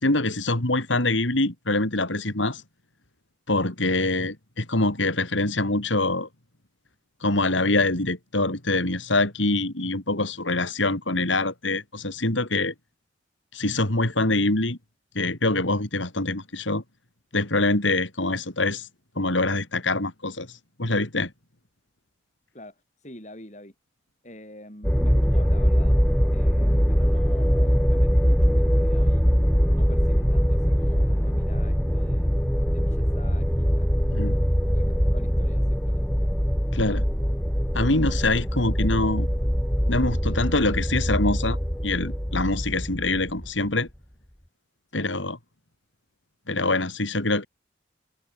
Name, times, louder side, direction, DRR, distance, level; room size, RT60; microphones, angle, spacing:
voice 1, 0.0-2.6 3.5-6.3 7.2-12.7 13.5-14.8 15.2-16.8 17.3-18.9 19.2-20.5 20.8-21.3 34.1-34.4 36.7-37.0 37.7-39.3 39.9-41.6 41.8-43.9 44.9-45.4 46.5-47.5, left 2 dB, 85° left, 3.9 m, -24 dB
voice 2, 22.5-23.7 24.2-26.0 26.3-32.3 32.7-33.9 34.6-36.1 44.9-45.1, left 1 dB, 40° left, 6.8 m, -46 dB
sound 1, 24.8-43.7, equal, 5° left, 1.1 m, -22 dB
head